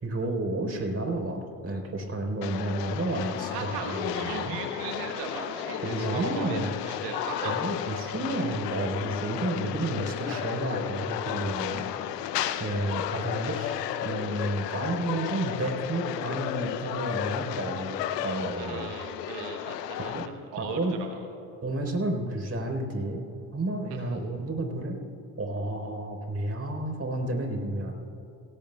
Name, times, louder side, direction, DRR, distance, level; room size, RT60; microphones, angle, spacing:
voice 1, 0.0-4.6 5.8-6.7 7.4-11.9 12.6-18.9 20.1-20.3 20.6-21.0 21.6-25.0 25.4-27.9, right 2 dB, 30° right, 3 dB, 3.9 m, -31 dB
sound 1, 2.4-20.3, left 10 dB, 90° left, 0.7 m, -33 dB
voice 2, 3.5-6.6 6.8-7.6 10.3-10.4 18.6-21.2 24.1-24.2, right 6 dB, 80° right, 3 dB, 1.2 m, -37 dB
26.0 x 18.0 x 2.3 m, 3.0 s
hypercardioid pair, 55°, 47 cm